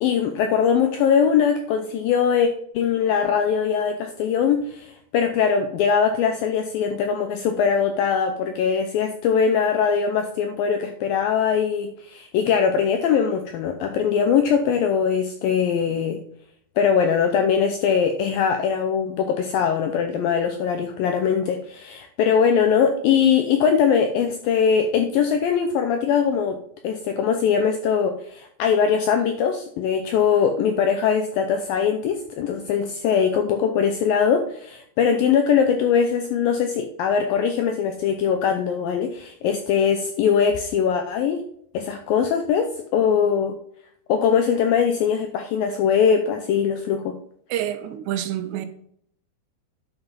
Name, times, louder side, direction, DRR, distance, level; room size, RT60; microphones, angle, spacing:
voice 1, 0.0-16.2 16.8-26.6 26.8-41.4 41.7-43.6 44.1-47.1, left 7 dB, 80° left, 2.0 m, -21 dB
voice 2, 47.5-48.7, right 11 dB, 85° right, 3.1 m, -27 dB
11.0 x 6.1 x 5.3 m
omnidirectional pair, 4.9 m